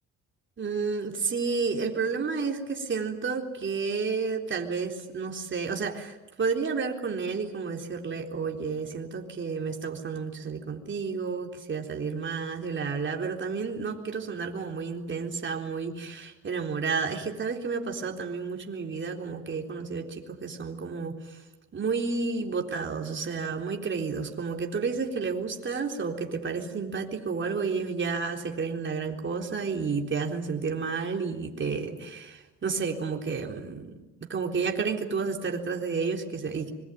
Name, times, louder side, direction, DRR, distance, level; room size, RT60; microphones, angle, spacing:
voice 1, 0.6-21.4 21.7-33.9 34.2-36.7, right 5 dB, 40° right, 2 dB, 3.9 m, -31 dB
25.5 x 23.0 x 9.2 m, 1.1 s
cardioid pair, 90°, 30 cm